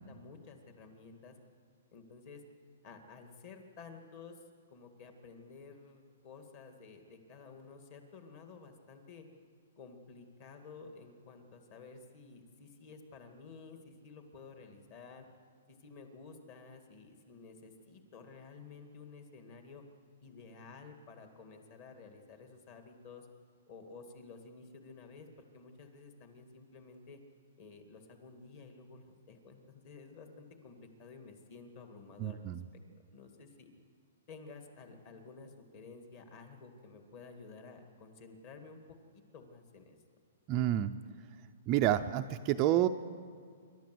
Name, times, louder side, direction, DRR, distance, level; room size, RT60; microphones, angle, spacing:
voice 1, 0.0-1.4 1.9-2.4 2.8-4.4 4.7-9.3 9.8-15.3 15.7-19.8 20.2-23.3 23.7-25.3 25.5-27.2 27.6-32.5 33.1-33.7 34.3-40.0, left 4 dB, 35° left, 5 dB, 2.2 m, -52 dB
voice 2, 32.2-32.6 40.5-40.9 41.7-42.9, right 12 dB, 25° right, 6 dB, 0.5 m, -29 dB
27.0 x 12.5 x 7.8 m, 2.1 s
hypercardioid pair, 170°, 0 cm